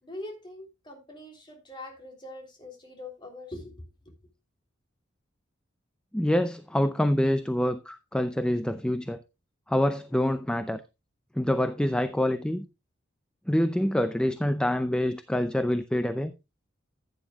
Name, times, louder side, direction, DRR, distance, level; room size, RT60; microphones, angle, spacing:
voice 1, 0.0-3.8, left 1 dB, 25° left, 3.3 m, -43 dB
voice 2, 6.1-9.2 9.7-10.8 11.4-12.6 13.5-16.3, left 1 dB, 5° left, 0.5 m, -26 dB
15.0 x 9.2 x 2.3 m
head